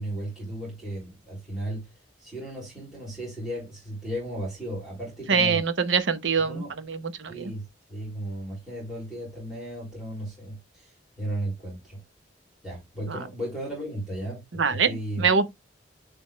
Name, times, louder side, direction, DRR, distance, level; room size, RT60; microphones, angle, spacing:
voice 1, 0.0-1.8 2.2-5.6 6.4-6.7 7.3-7.6 7.9-12.0 12.6-15.3, right 1 dB, ahead, 3.6 m, -35 dB
voice 2, 5.3-7.5 13.1-13.2 14.5-15.5, right 5 dB, 85° right, 0.9 m, -24 dB
10.5 x 3.6 x 3.1 m
head